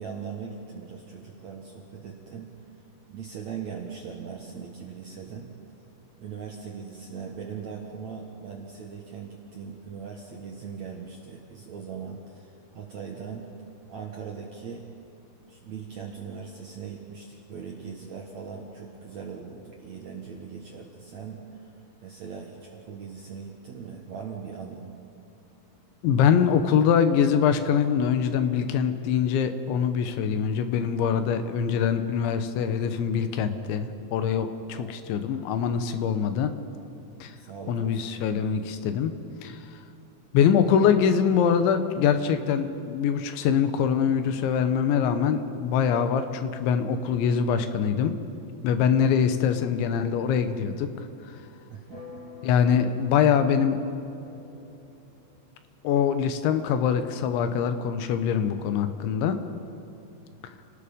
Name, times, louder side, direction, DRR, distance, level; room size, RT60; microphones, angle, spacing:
voice 1, 0.0-2.5 3.1-5.5 6.2-13.4 13.9-14.9 15.5-21.4 22.0-24.9 34.7-34.9 37.4-38.1 51.7-52.2, right 6 dB, 65° right, 0 dB, 1.9 m, -40 dB
voice 2, 26.0-36.5 37.2-37.3 37.7-39.1 39.4-39.6 40.3-48.2 48.6-50.9 52.4-53.8 55.8-59.4, left 7 dB, 85° left, 9 dB, 3.4 m, -23 dB
sound 1, 51.9-55.6, left 4 dB, 45° left, 4.1 m, -47 dB
28.5 x 18.5 x 5.2 m, 2.9 s
omnidirectional pair, 5.2 m